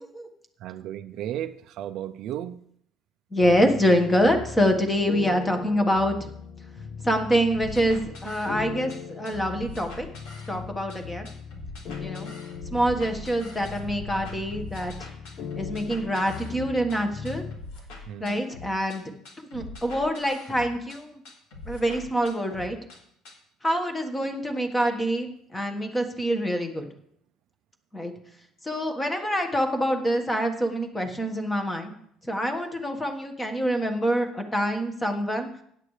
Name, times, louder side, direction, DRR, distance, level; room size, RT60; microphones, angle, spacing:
voice 1, 0.6-2.6 18.1-18.5, right 11 dB, 60° right, 9 dB, 0.5 m, -34 dB
voice 2, 3.3-6.1 7.0-10.1 10.5-11.3 12.0-12.3 12.7-15.1 15.5-17.4 18.2-19.0 19.4-21.2 21.7-22.8 23.6-26.9 27.9-28.1 28.6-31.9 32.2-35.5, equal, 10° left, 5 dB, 1.5 m, -25 dB
sound 1, 3.4-17.6, left 6 dB, 45° left, 0.7 m, -39 dB
sound 2, 7.5-9.0 9.2-11.0 11.3-17.0 17.3-19.0 19.3-21.0 21.3-23.0 23.3-23.4, left 2 dB, 90° left, 3.6 m, -42 dB
16.5 x 9.8 x 3.3 m, 0.70 s
cardioid pair, 140°, 0 cm